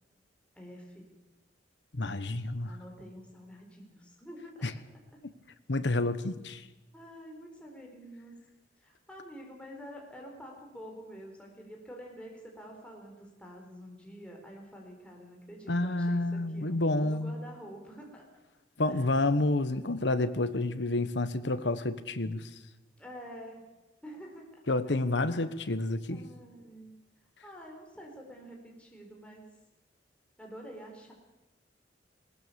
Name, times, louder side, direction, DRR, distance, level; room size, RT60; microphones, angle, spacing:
voice 1, 0.5-1.1 2.6-4.7 6.9-8.4 8.8-16.2 16.5-18.2 18.9-19.3 19.7-20.4 23.0-23.6 24.0-24.5 25.5-25.6 26.1-26.9 27.4-29.4 30.4-31.1, equal, 5° left, 0 dB, 4.3 m, -48 dB
voice 2, 1.9-2.8 4.6-4.7 5.7-6.6 15.7-17.3 18.8-22.5 24.7-26.3, left 2 dB, 75° left, 12 dB, 1.2 m, -29 dB
21.0 x 19.0 x 7.0 m, 1.0 s
head